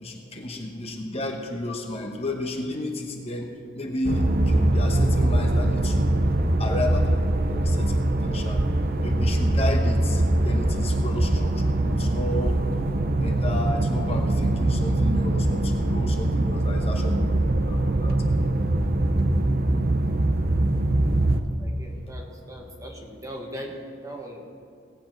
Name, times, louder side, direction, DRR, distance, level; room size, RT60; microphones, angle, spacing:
voice 1, 0.0-7.2 7.5-8.6 9.0-12.6 13.2-18.2, left 1 dB, 30° left, 2 dB, 1.0 m, -32 dB
sound 1, 4.0-21.4, right 1 dB, 50° right, 0.7 m, -22 dB
voice 2, 21.6-24.5, equal, 15° right, 1 dB, 1.3 m, -40 dB
17.5 x 8.3 x 4.5 m, 2.6 s
head